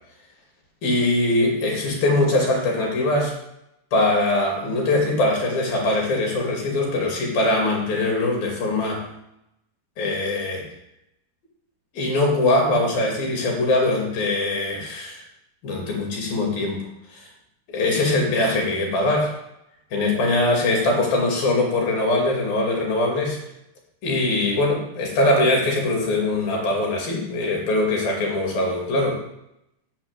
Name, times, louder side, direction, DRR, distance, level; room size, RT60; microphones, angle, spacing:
voice 1, 0.8-3.3 3.9-9.0 10.0-10.7 11.9-15.2 15.6-16.8 17.7-19.3 19.9-23.4 24.0-29.2, left 2 dB, 60° left, -1 dB, 4.3 m, -22 dB
8.3 x 6.1 x 8.2 m, 0.83 s
omnidirectional pair, 4.7 m